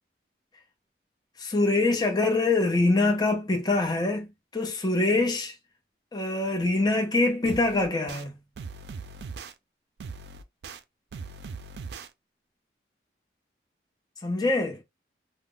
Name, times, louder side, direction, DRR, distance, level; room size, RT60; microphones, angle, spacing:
voice 1, 1.4-5.5 6.1-8.4 14.2-14.8, left 2 dB, 25° left, 0.6 m, -24 dB
sound 1, 7.4-8.2 8.5-9.5 10.0-10.8 11.1-12.1, right 4 dB, 70° right, 0.3 m, -40 dB
2.3 x 2.0 x 3.7 m
head